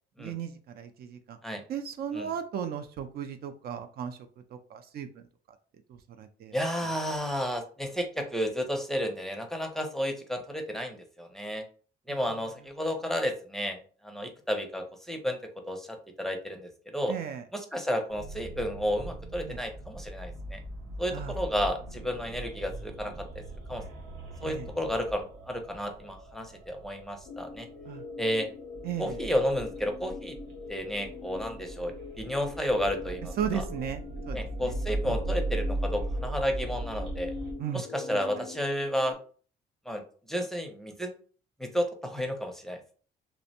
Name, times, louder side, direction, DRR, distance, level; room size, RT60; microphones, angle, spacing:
voice 1, 0.2-1.4 1.7-4.2 4.5-5.3 5.9-6.5 12.1-12.2 17.1-17.4 19.4-19.6 21.1-21.3 24.5-24.7 27.9-28.0 28.8-29.2 33.4-34.7 35.0-35.2 37.6-37.8, right 8 dB, 60° right, 7 dB, 0.4 m, -36 dB
voice 2, 6.5-11.6 12.1-13.8 14.0-15.4 15.7-17.1 17.5-20.6 21.0-23.3 23.7-23.8 24.4-27.7 28.2-28.5 29.0-30.3 30.7-33.6 34.3-37.3 37.7-39.2 39.9-40.0 40.3-41.1 41.6-42.9, equal, ahead, 4 dB, 0.5 m, -32 dB
sound 1, 18.1-37.5, right 1 dB, 90° right, 0.8 m, -39 dB
sound 2, 27.3-39.1, left 5 dB, 85° left, 0.4 m, -44 dB
2.5 x 2.0 x 2.8 m, 0.42 s
supercardioid pair, 75°, 18 cm